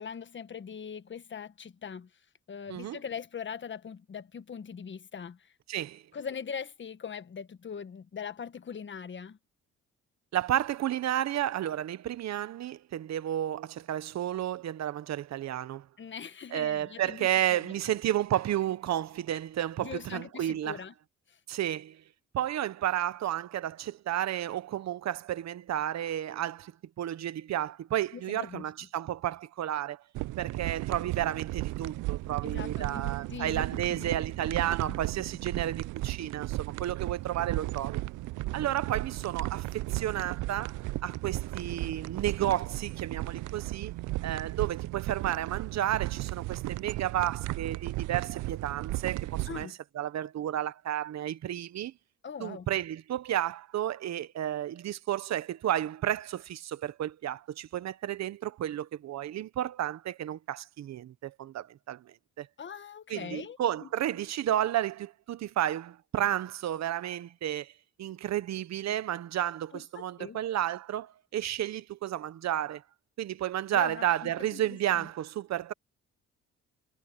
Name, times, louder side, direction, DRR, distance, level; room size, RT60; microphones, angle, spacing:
voice 1, 0.0-2.1 2.5-5.5 6.1-9.4 16.0-17.9 19.8-20.9 21.3-21.4 28.1-28.7 32.4-34.2 34.5-35.0 35.5-35.6 49.5-49.8 52.2-52.7 62.6-63.9 69.7-70.4 73.7-75.1, left 7 dB, 40° left, 1.3 m, -41 dB
voice 2, 5.7-6.0 10.3-15.9 16.5-20.8 21.5-22.0 22.3-26.7 27.0-30.0 30.4-38.0 38.5-43.9 44.2-49.7 49.9-51.9 52.4-62.5 63.1-67.7 68.0-72.8 73.2-75.7, right 12 dB, 60° right, 1.0 m, -32 dB
sound 1, 30.1-49.6, right 19 dB, 80° right, 0.5 m, -35 dB
cardioid pair, 90°, 30 cm